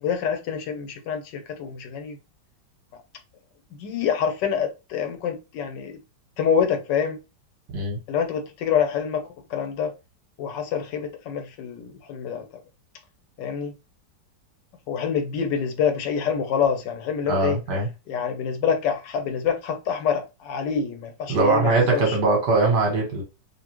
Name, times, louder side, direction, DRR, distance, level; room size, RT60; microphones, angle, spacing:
voice 1, 0.0-2.2 3.8-6.0 6.4-7.2 8.1-9.9 10.4-12.4 13.4-13.7 14.9-17.6 18.1-22.2, left 7 dB, 85° left, 1.4 m, -26 dB
voice 2, 17.3-17.9 21.3-23.2, right 3 dB, 75° right, 1.7 m, -21 dB
4.0 x 2.8 x 2.9 m
omnidirectional pair, 1.9 m